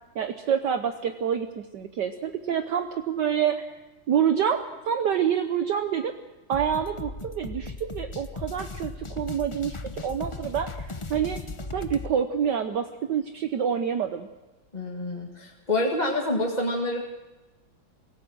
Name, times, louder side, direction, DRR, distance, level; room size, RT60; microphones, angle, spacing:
voice 1, 0.1-3.7 4.1-6.1 6.5-11.4 11.7-14.3, right 8 dB, 60° right, 8 dB, 1.5 m, -27 dB
sound 1, 6.5-12.1, left 3 dB, 55° left, 0.3 m, -37 dB
voice 2, 14.7-17.0, left 1 dB, 20° left, 0 dB, 1.8 m, -27 dB
25.5 x 17.0 x 6.2 m, 1.2 s
omnidirectional pair, 2.2 m